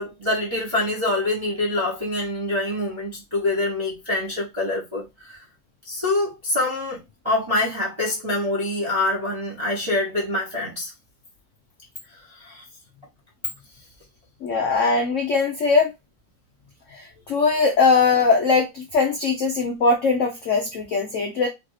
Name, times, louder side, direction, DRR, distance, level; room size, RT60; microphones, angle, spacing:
voice 1, 0.0-5.4 5.8-10.9 12.3-12.6, left 2 dB, 20° right, 0.8 m, -25 dB
voice 2, 14.4-15.9 16.9-21.5, left 4 dB, 90° left, 0.6 m, -20 dB
3.2 x 2.6 x 3.1 m
omnidirectional pair, 2.0 m